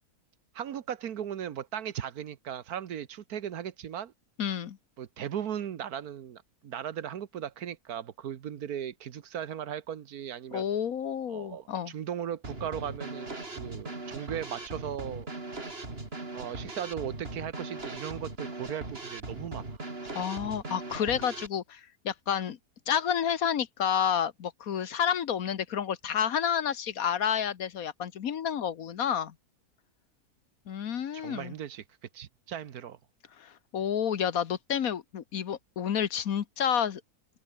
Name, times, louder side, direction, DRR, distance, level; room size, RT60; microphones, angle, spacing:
voice 1, 0.5-4.1 5.0-10.6 11.3-15.3 16.3-19.8 31.1-31.8 32.1-33.0, right 9 dB, 70° right, 1.5 m, -37 dB
voice 2, 4.4-4.8 10.5-11.9 20.1-22.6 22.9-29.3 30.7-31.5 33.4-37.0, left 8 dB, 65° left, 1.5 m, -30 dB
Drum kit / Snare drum, 12.4-21.5, right 2 dB, 35° right, 3.6 m, -39 dB
omnidirectional pair, 1.7 m